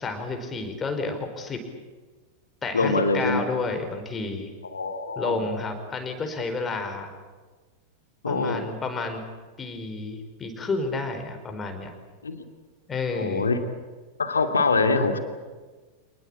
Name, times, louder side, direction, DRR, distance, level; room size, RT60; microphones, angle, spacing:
voice 1, 0.0-1.6 2.6-4.5 5.2-7.1 8.3-9.2 9.6-11.9 12.9-13.5, left 3 dB, 20° left, 6 dB, 4.7 m, -30 dB
voice 2, 2.7-3.4 4.7-5.4 8.2-8.7 12.2-12.4 13.2-13.6 14.2-15.2, left 3 dB, 75° left, 6 dB, 2.7 m, -24 dB
27.5 x 20.0 x 8.7 m, 1.4 s
figure-of-eight pair, 90°, 0 cm